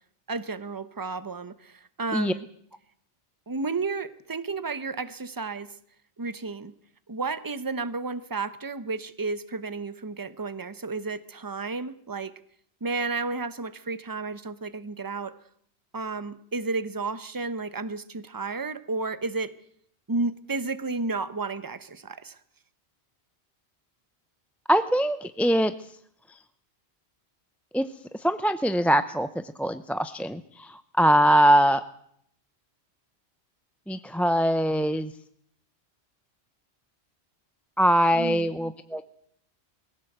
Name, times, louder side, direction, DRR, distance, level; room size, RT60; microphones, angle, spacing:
voice 1, 0.3-2.5 3.5-5.7 6.2-6.7 7.1-12.3 12.8-15.3 15.9-19.5 20.1-22.4 38.1-38.5, right 3 dB, 20° right, 14 dB, 1.0 m, -32 dB
voice 2, 24.7-25.7 26.3-26.4 27.7-27.9 28.1-31.8 33.9-35.1 37.8-39.0, equal, ahead, 11 dB, 0.5 m, -22 dB
22.5 x 16.5 x 8.0 m, 0.69 s
omnidirectional pair, 1.1 m